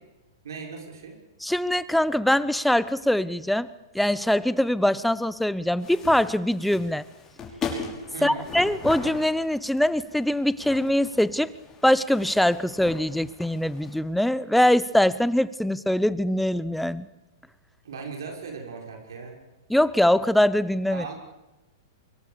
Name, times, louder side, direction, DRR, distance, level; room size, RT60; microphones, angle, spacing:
voice 1, 0.4-1.2 8.1-8.5 17.8-19.4 20.9-21.1, right 5 dB, 70° right, 2 dB, 6.3 m, -38 dB
voice 2, 1.4-7.0 8.2-11.5 11.8-17.1 19.7-21.1, left 1 dB, ahead, 17 dB, 0.9 m, -23 dB
sound 1, 5.8-14.0, left 5 dB, 20° left, 6.3 m, -39 dB
25.0 x 23.5 x 7.0 m, 1.0 s
hypercardioid pair, 110°, 2 cm